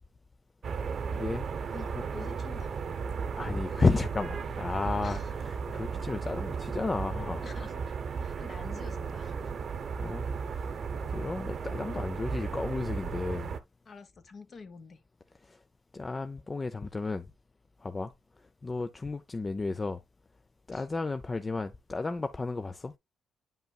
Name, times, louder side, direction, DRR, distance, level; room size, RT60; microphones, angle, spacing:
sound 1, 0.6-13.6, right 5 dB, 55° right, 0.9 m, -35 dB
voice 1, 1.1-1.5 3.4-7.4 10.0-10.3 10.5-10.7 11.1-13.6 15.4-15.6 15.9-17.3 17.8-18.1 18.6-20.0 20.7-23.0, left 3 dB, 25° left, 0.5 m, -32 dB
voice 2, 1.7-2.7 5.0-5.3 7.4-9.5 13.8-15.0 20.7-20.8, left 4 dB, 45° left, 1.2 m, -47 dB
9.0 x 5.6 x 2.3 m
cardioid pair, 90°, 0 cm